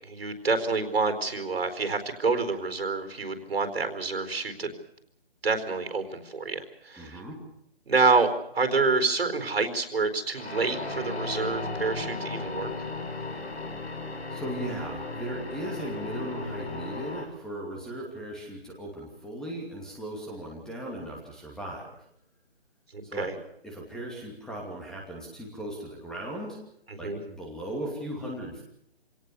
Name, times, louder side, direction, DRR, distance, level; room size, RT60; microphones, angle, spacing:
voice 1, 0.0-4.7 5.4-7.2 7.9-12.7 22.9-23.3 26.9-27.2, right 4 dB, 70° right, 8 dB, 4.4 m, -27 dB
voice 2, 7.0-7.4 13.9-14.1 14.3-21.9 23.0-23.3 23.6-26.6 27.0-28.6, right 1 dB, ahead, -1 dB, 2.6 m, -37 dB
sound 1, 10.4-17.3, left 3 dB, 90° left, 6.5 m, -35 dB
26.5 x 18.5 x 6.9 m, 0.73 s
hypercardioid pair, 165°, 32 cm